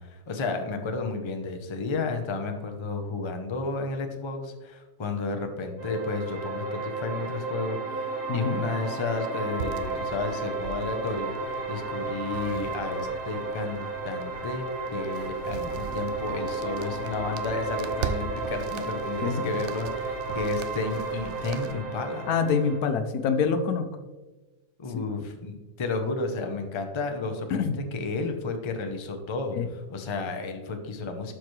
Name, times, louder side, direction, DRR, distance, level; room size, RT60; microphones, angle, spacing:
voice 1, 0.0-22.3 24.8-31.3, left 3 dB, 30° left, 5 dB, 0.5 m, -32 dB
sound 1, 5.8-22.8, right 3 dB, 35° right, 1.6 m, -33 dB
voice 2, 8.3-8.6 19.2-19.5 22.3-23.9 24.9-25.1 27.5-27.8 29.5-29.7, left 6 dB, 75° left, 8 dB, 1.2 m, -26 dB
sound 2, 9.6-21.7, right 6 dB, 65° right, 0.7 m, -40 dB
11.5 x 4.8 x 3.2 m, 1.2 s
omnidirectional pair, 1.6 m